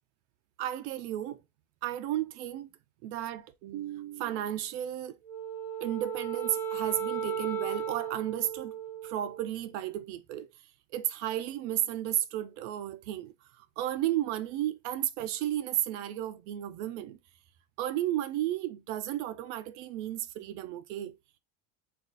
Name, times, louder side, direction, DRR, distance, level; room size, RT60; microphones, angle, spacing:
voice 1, 0.6-1.4 1.8-2.7 3.0-5.2 5.8-8.8 9.0-10.5 10.9-17.2 17.8-21.1, right 12 dB, 65° right, 0.5 m, -33 dB
Wind instrument woodwind instrument, 5.2-9.7, right 7 dB, 5° left, 0.5 m, -35 dB
2.4 x 2.3 x 3.8 m
cardioid pair, 165°, 39 cm